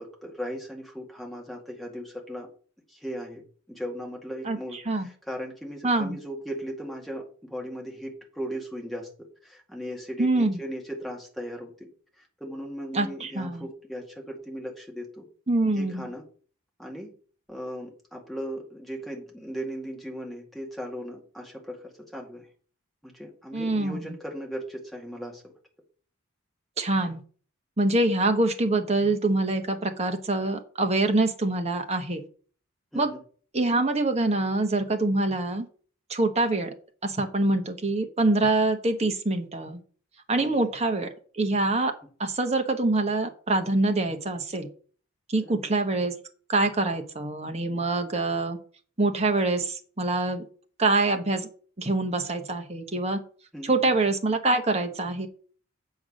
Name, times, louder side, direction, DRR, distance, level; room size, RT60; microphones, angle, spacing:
voice 1, 0.0-2.5 2.9-3.4 3.7-9.1 9.4-11.9 12.2-15.2 15.8-16.2 16.8-17.1 17.5-22.5 23.0-25.5 32.9-33.2 40.4-40.5 45.4-45.8 53.5-53.8, equal, ahead, -1 dB, 2.1 m, -37 dB
voice 2, 4.4-5.1 5.8-6.2 10.2-10.6 12.9-13.6 15.5-16.1 23.5-24.2 26.8-27.2 27.8-32.2 32.9-33.1 33.5-35.7 36.1-36.7 37.0-39.8 40.3-41.1 41.3-41.9 42.2-44.7 45.3-46.1 46.5-48.6 49.0-50.4 50.8-51.5 51.8-53.2 53.6-55.3, right 2 dB, 30° right, 5 dB, 1.2 m, -25 dB
7.9 x 4.7 x 6.3 m, 0.42 s
head